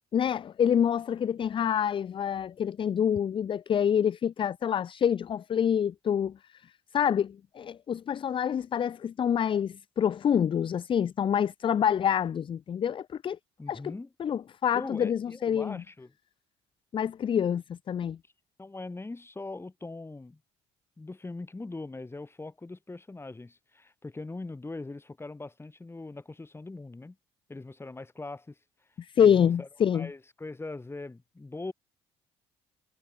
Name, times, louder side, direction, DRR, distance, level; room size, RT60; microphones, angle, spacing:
voice 1, 0.1-6.4 6.9-13.4 13.7-13.9 14.2-15.8 16.9-18.2 29.0-30.1, left 8 dB, 40° left, 0.5 m, -27 dB
voice 2, 13.6-14.1 14.7-16.1 18.6-20.4 21.0-27.2 27.5-28.5 29.2-29.7 29.9-31.7, left 2 dB, 15° left, 2.4 m, -41 dB
hypercardioid pair, 55°, 14 cm